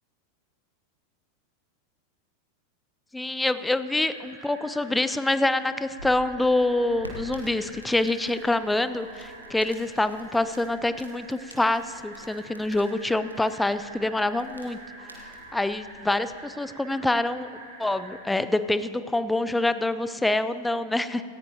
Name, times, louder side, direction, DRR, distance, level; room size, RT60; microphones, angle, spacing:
voice 1, 3.1-14.8 15.5-17.5 17.8-21.2, left 2 dB, 5° left, 13 dB, 0.5 m, -26 dB
sound 1, 3.8-18.2, right 3 dB, 55° right, 3.3 m, -47 dB
sound 2, 5.7-16.4, equal, 85° right, 1.4 m, -48 dB
18.0 x 14.5 x 2.9 m, 2.4 s
figure-of-eight pair, 90°, 0 cm